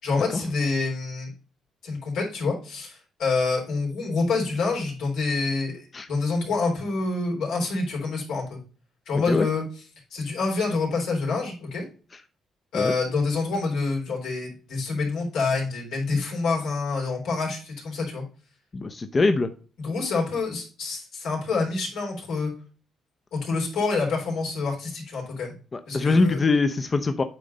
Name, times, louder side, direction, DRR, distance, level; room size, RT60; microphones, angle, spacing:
voice 1, 0.0-1.3 1.8-8.6 9.1-9.6 10.1-11.8 12.7-18.2 19.8-22.5 23.3-25.5 25.9-26.4, left 3 dB, 85° left, -2 dB, 3.6 m, -27 dB
voice 2, 18.7-19.5 25.7-27.2, left 3 dB, 30° left, 8 dB, 0.6 m, -23 dB
8.9 x 3.9 x 5.3 m, 0.38 s
cardioid pair, 90°, 0 cm